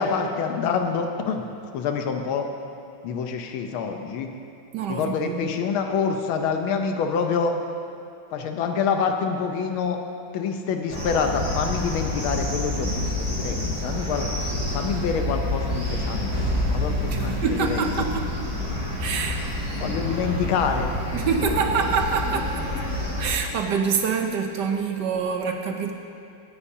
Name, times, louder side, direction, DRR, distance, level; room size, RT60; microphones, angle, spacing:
voice 1, 0.0-1.5 1.7-2.5 3.0-4.3 4.9-7.5 8.3-10.0 10.3-14.4 14.7-17.8 19.8-20.9, left 5 dB, 90° left, 5 dB, 1.6 m, -26 dB
voice 2, 4.7-5.5 17.1-18.3 19.0-19.5 21.1-22.7 23.2-25.9, right 5 dB, 70° right, 4 dB, 1.1 m, -26 dB
sound 1, 10.9-23.3, left 1 dB, 20° right, 3.1 m, -28 dB
17.0 x 9.9 x 2.7 m, 2.6 s
omnidirectional pair, 2.2 m